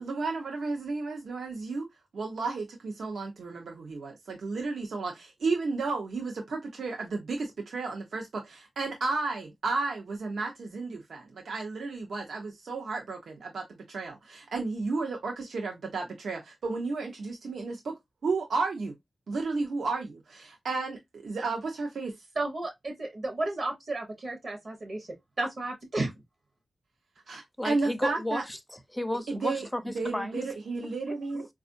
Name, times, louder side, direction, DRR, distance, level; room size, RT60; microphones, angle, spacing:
voice 1, 0.0-1.9 2.1-17.9 18.2-18.9 19.3-22.1 27.3-28.4 29.3-29.7 29.9-31.5, right 3 dB, 80° right, 0.7 m, -33 dB
voice 2, 22.4-25.1 25.4-26.1, right 2 dB, 45° right, 0.8 m, -32 dB
voice 3, 27.6-30.4 30.8-31.4, left 1 dB, 5° left, 0.4 m, -34 dB
4.3 x 2.4 x 2.5 m
wide cardioid pair, 160°, 0 cm